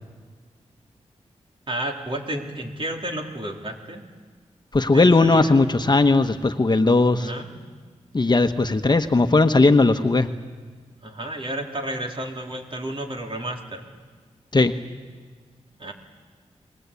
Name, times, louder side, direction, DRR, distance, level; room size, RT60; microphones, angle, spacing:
voice 1, 1.7-4.0 4.9-5.6 7.2-7.5 11.0-13.8 15.8-15.9, right 1 dB, 45° right, 1 dB, 3.9 m, -31 dB
voice 2, 4.7-7.3 8.1-10.3 14.5-14.7, left 3 dB, 35° left, 7 dB, 1.3 m, -18 dB
28.0 x 20.5 x 8.5 m, 1.5 s
cardioid pair, 55°, 12 cm